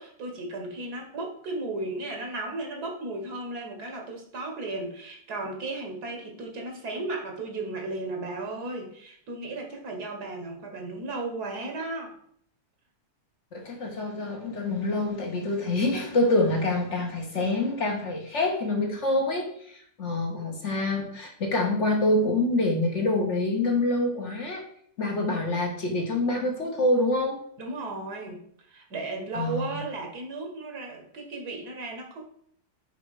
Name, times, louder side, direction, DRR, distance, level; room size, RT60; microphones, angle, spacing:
voice 1, 0.0-12.1 27.6-28.4 28.7-32.2, right 2 dB, 75° right, 2 dB, 1.9 m, -35 dB
voice 2, 13.5-24.6 25.0-27.4 29.3-29.6, left 2 dB, 50° left, 1 dB, 1.4 m, -26 dB
5.6 x 4.9 x 4.7 m, 0.65 s
omnidirectional pair, 1.7 m